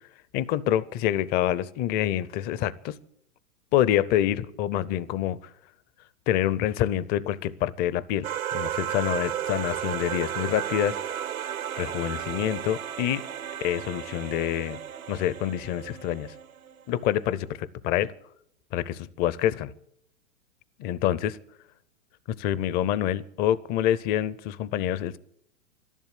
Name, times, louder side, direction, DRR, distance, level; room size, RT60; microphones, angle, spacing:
voice 1, 0.3-3.0 3.7-5.4 6.3-11.0 11.8-13.2 13.6-14.8 15.1-16.3 16.9-18.1 18.7-19.7 20.8-21.4 22.3-25.2, left 12 dB, 25° left, 20 dB, 0.6 m, -26 dB
sound 1, 8.2-16.8, right 10 dB, 75° right, 1.2 m, -33 dB
12.0 x 11.0 x 9.9 m, 0.70 s
hypercardioid pair, 115°, 42 cm